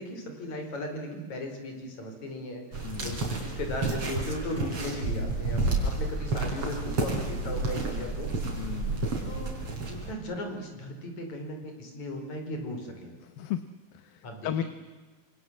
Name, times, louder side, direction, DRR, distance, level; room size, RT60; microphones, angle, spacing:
voice 1, 0.0-8.3 9.3-9.5 9.9-13.2 14.2-14.6, left 1 dB, 45° left, 4 dB, 5.9 m, -37 dB
sound 1, 2.7-10.1, right 3 dB, 35° right, 5.4 m, -30 dB
voice 2, 2.8-3.2 8.6-9.1 13.2-13.6 13.9-14.6, left 11 dB, 70° left, 11 dB, 2.6 m, -35 dB
27.0 x 27.0 x 7.5 m, 1.4 s
omnidirectional pair, 4.7 m